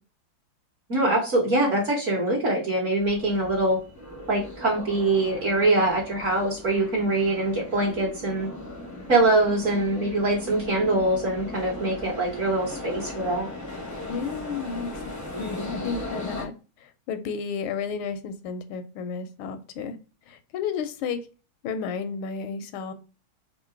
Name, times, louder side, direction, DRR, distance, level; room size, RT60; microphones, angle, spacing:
voice 1, 0.9-3.8 4.3-8.5 9.1-13.5, right 2 dB, 45° right, 1.2 m, -23 dB
sound 1, 3.0-16.4, left 2 dB, 20° left, 0.4 m, -38 dB
voice 2, 14.1-16.5 16.8-20.0 20.3-21.3 21.6-22.9, left 6 dB, 80° left, 1.4 m, -32 dB
3.7 x 2.6 x 4.4 m
omnidirectional pair, 2.3 m